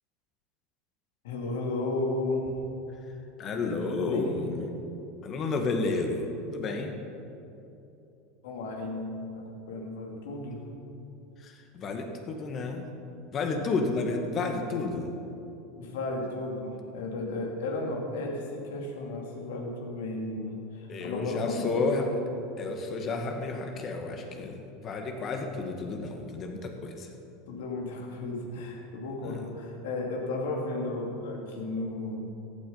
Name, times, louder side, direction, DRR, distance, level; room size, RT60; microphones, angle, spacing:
voice 1, 1.2-2.6 3.6-4.4 8.4-10.6 15.7-22.0 27.5-32.3, left 2 dB, 75° left, 1 dB, 2.5 m, -34 dB
voice 2, 3.4-4.8 5.2-6.9 11.4-12.9 13.3-15.1 20.9-22.1 22.6-27.1 29.2-29.4, left 3 dB, 40° left, 4 dB, 1.8 m, -31 dB
15.0 x 9.2 x 5.6 m, 2.9 s
hypercardioid pair, 90°, 0 cm